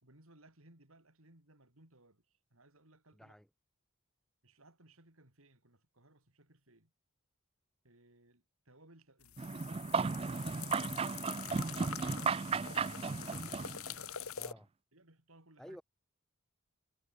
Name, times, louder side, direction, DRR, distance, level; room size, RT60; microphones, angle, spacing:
voice 1, 0.0-3.3 4.4-6.9 7.8-12.7 14.9-15.8, right 2 dB, 75° right, 4.5 m, -63 dB
voice 2, 3.1-3.5 14.3-14.7 15.6-15.8, equal, ahead, 1.2 m, -51 dB
sound 1, 9.2-14.5, left 9 dB, 80° left, 1.4 m, -45 dB
sound 2, 9.4-14.0, right 5 dB, 25° right, 0.3 m, -35 dB
head